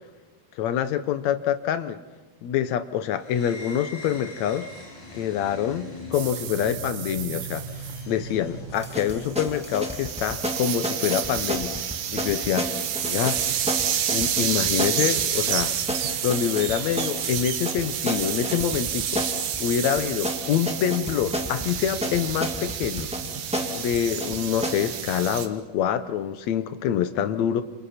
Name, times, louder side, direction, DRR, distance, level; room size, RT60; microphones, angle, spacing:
voice 1, 0.6-2.0 2.4-4.7 5.1-7.7 8.1-12.7 13.0-13.4 14.1-15.7 16.2-19.3 19.6-23.1 23.7-27.6, left 9 dB, 75° left, 11 dB, 1.6 m, -26 dB
sound 1, 3.2-9.8, right 1 dB, 55° left, 8.6 m, -40 dB
sound 2, 6.1-8.0 8.8-25.5, right 9 dB, 75° right, 3.1 m, -30 dB
sound 3, 8.7-24.9, equal, ahead, 1.5 m, -32 dB
28.5 x 28.5 x 4.3 m, 1.3 s
omnidirectional pair, 4.3 m